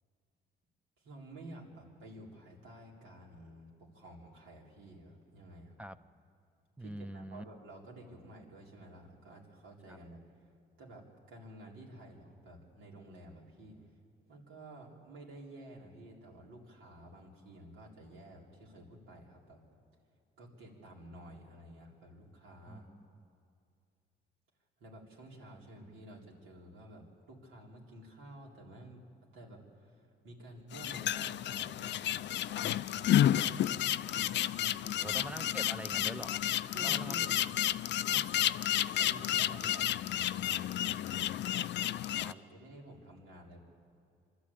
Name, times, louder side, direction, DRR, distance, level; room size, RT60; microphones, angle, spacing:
voice 1, 1.0-5.8 6.8-10.5 10.8-13.8 14.3-19.6 20.4-22.9 24.8-29.0 29.3-33.8 34.1-35.2 36.7-37.4 38.0-38.3 38.8-43.6, right 1 dB, 80° right, -2 dB, 3.8 m, -52 dB
voice 2, 6.8-7.4 9.9-10.0 22.7-23.0 35.0-36.4 36.8-37.2 42.2-42.4, right 1 dB, 5° right, 12 dB, 0.6 m, -44 dB
sound 1, 30.7-42.3, left 12 dB, 65° left, 0.5 m, -31 dB
26.0 x 12.5 x 8.6 m, 2.4 s
cardioid pair, 90°, 20 cm